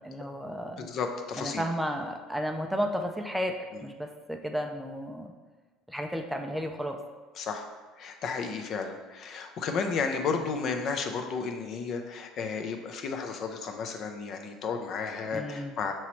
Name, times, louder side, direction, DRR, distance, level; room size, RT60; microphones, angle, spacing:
voice 1, 0.0-0.9 1.4-5.3 5.9-7.0 10.3-10.5 15.3-15.8, equal, 5° right, 3 dB, 0.4 m, -33 dB
voice 2, 0.8-1.6 7.4-7.7 8.0-15.9, left 5 dB, 50° left, 5 dB, 0.5 m, -33 dB
5.5 x 2.9 x 3.1 m, 1.3 s
supercardioid pair, 100°, 0 cm